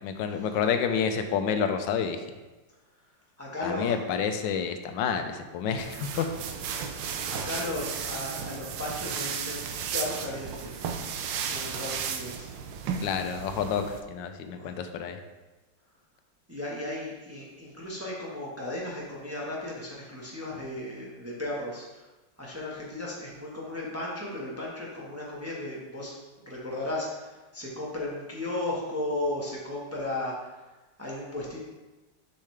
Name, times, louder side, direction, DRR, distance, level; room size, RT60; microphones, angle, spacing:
voice 1, 0.0-2.2 3.6-6.3 13.0-13.8 14.1-15.2, left 7 dB, 85° left, 7 dB, 1.3 m, -29 dB
voice 2, 3.4-3.9 5.3-5.4 5.7-6.3 6.7-10.9 11.5-12.5 14.6-14.8 16.5-22.1 22.4-26.2 26.5-30.6 31.0-31.6, left 1 dB, 10° right, -5 dB, 0.9 m, -35 dB
sound 1, 5.8-14.0, right 7 dB, 85° right, 1.3 m, -34 dB
7.0 x 5.6 x 3.2 m, 1.1 s
omnidirectional pair, 2.0 m